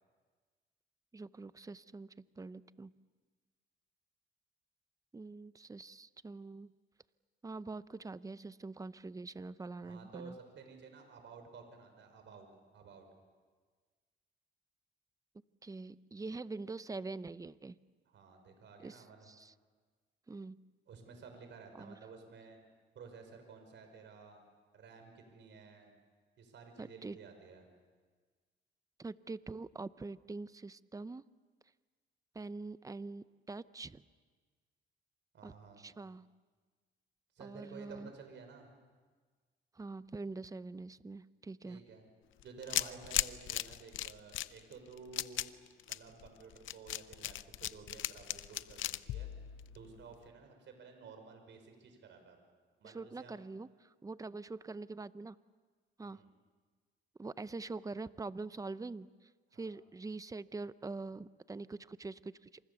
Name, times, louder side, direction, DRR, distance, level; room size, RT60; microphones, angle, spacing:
voice 1, 1.1-2.9 5.1-6.7 7.4-10.4 15.6-17.8 18.8-19.5 20.3-20.6 21.7-22.0 26.8-27.2 29.0-31.2 32.3-34.0 35.4-36.3 37.4-38.1 39.7-41.8 52.8-55.4 56.0-56.2 57.2-62.6, right 3 dB, 15° right, 15 dB, 0.7 m, -44 dB
voice 2, 9.8-12.5 12.7-13.0 18.1-19.3 20.9-22.6 22.9-24.4 24.7-25.9 26.4-27.6 35.3-35.9 37.3-38.7 41.6-42.1 42.4-45.5 45.9-49.3 49.7-52.4 52.8-53.4 56.0-56.3 59.5-59.7, right 5 dB, 65° right, 5 dB, 5.8 m, -53 dB
sound 1, 42.4-50.1, left 13 dB, 80° left, 0.7 m, -37 dB
28.0 x 27.0 x 7.1 m, 1.5 s
cardioid pair, 90°, 20 cm